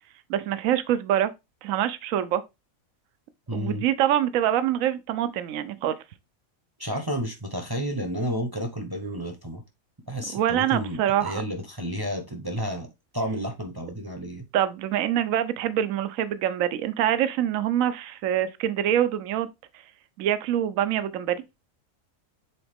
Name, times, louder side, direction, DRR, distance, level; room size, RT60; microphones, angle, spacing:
voice 1, 0.3-1.3 1.6-2.4 3.5-5.9 10.3-11.4 14.5-19.5 20.2-21.4, right 11 dB, 75° right, 1.0 m, -25 dB
voice 2, 3.5-3.8 6.8-9.6 10.1-12.9 13.1-14.4, equal, 20° right, 0.7 m, -31 dB
7.0 x 3.9 x 3.4 m
omnidirectional pair, 1.4 m